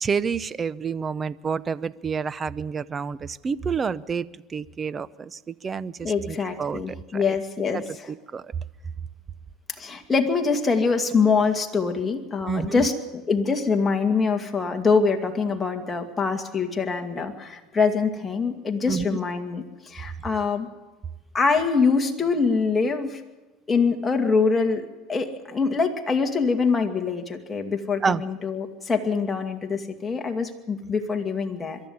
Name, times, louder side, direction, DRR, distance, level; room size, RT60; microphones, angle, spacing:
voice 1, 0.0-7.4 7.7-8.5 12.5-12.9 18.9-19.2 28.0-28.2, right 6 dB, 25° right, 19 dB, 0.6 m, -29 dB
voice 2, 6.0-8.1 9.8-12.9 13.3-20.7 21.3-23.2 23.7-31.8, left 4 dB, 15° left, 3 dB, 2.3 m, -24 dB
22.5 x 13.5 x 9.5 m, 1.1 s
supercardioid pair, 130°, 0 cm